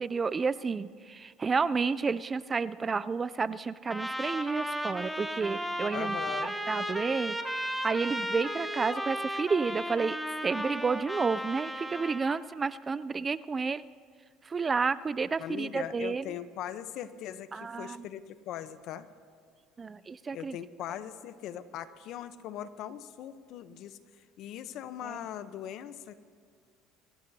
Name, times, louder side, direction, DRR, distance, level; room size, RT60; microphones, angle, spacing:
voice 1, 0.0-6.2 6.4-7.4 7.6-10.2 10.4-13.8 14.4-16.3 17.5-18.1 19.8-20.6 25.0-25.2, right 5 dB, 20° right, 17 dB, 0.3 m, -31 dB
Trumpet, 3.9-12.4, equal, ahead, 0.9 m, -35 dB
voice 2, 5.9-6.6 15.4-19.1 20.3-24.0 24.4-26.2, left 10 dB, 60° left, 12 dB, 0.8 m, -40 dB
25.0 x 15.0 x 2.8 m, 2.1 s
cardioid pair, 130°, 0 cm